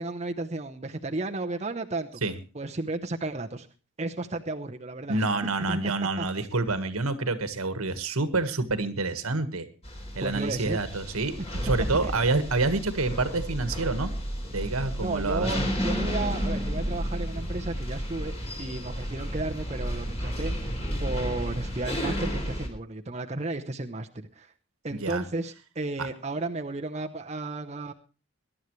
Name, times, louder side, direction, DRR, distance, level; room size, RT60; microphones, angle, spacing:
voice 1, 0.0-2.2 2.5-3.7 4.0-5.2 5.7-5.8 6.2-6.5 10.2-10.8 12.0-12.4 15.0-20.7 21.0-24.5 24.8-27.9, right 2 dB, 30° right, 4 dB, 0.8 m, -33 dB
voice 2, 5.1-9.7 10.1-14.1 14.5-15.7 24.9-25.2, right 3 dB, 85° right, 11 dB, 1.5 m, -28 dB
sound 1, 9.8-22.7, equal, 30° left, 3.7 m, -32 dB
22.0 x 11.0 x 3.1 m, 0.34 s
head